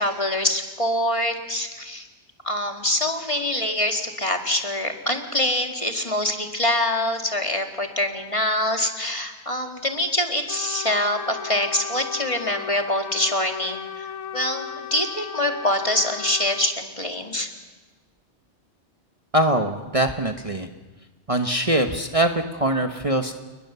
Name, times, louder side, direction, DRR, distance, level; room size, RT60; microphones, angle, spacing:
voice 1, 0.0-2.1 2.4-14.1 14.3-17.5, left 1 dB, 30° left, 3 dB, 2.2 m, -25 dB
Trumpet, 10.5-16.7, left 8 dB, 85° left, 1.3 m, -36 dB
voice 2, 19.3-20.7 21.3-23.3, right 1 dB, 30° right, 5 dB, 1.2 m, -22 dB
30.0 x 20.5 x 7.0 m, 1.2 s
omnidirectional pair, 1.2 m